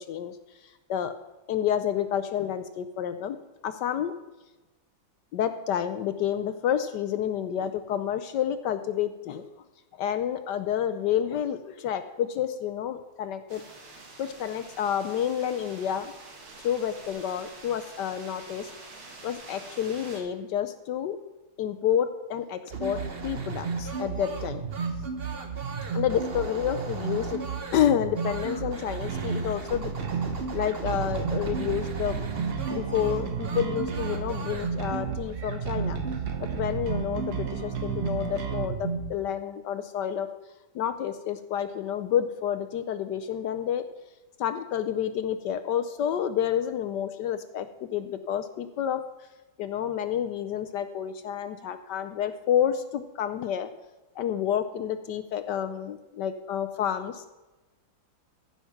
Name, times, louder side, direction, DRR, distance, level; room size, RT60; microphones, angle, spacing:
voice 1, 1.5-3.4 3.6-4.1 5.3-9.4 9.9-13.6 14.2-16.1 16.6-18.7 19.2-21.2 21.6-24.6 25.9-27.4 27.7-29.9 30.2-30.3 30.5-32.2 32.7-36.0 36.4-40.3 40.7-43.8 44.4-49.0 49.6-53.7 54.2-57.3, left 9 dB, 70° left, 10 dB, 1.0 m, -29 dB
sound 1, 13.5-20.2, right 3 dB, 90° right, 2.8 m, -47 dB
sound 2, 22.7-39.1, right 5 dB, 35° right, 1.0 m, -33 dB
sound 3, 29.1-38.7, right 7 dB, 55° right, 1.5 m, -35 dB
14.5 x 5.8 x 5.8 m, 1.1 s
omnidirectional pair, 2.3 m